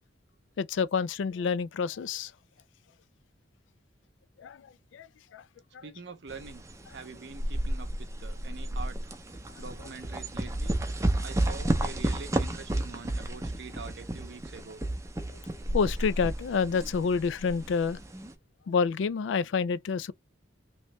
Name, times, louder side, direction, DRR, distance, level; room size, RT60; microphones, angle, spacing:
voice 1, 0.6-2.3 4.4-4.7 4.9-5.1 5.3-5.4 5.7-5.9 15.7-18.0 18.7-20.1, left 5 dB, 75° left, 0.3 m, -28 dB
voice 2, 5.8-6.6 6.9-9.0 9.6-10.7 11.2-14.8, right 4 dB, 60° right, 0.6 m, -45 dB
sound 1, 6.3-18.3, right 1 dB, 15° right, 0.5 m, -32 dB
3.1 x 3.0 x 3.0 m
head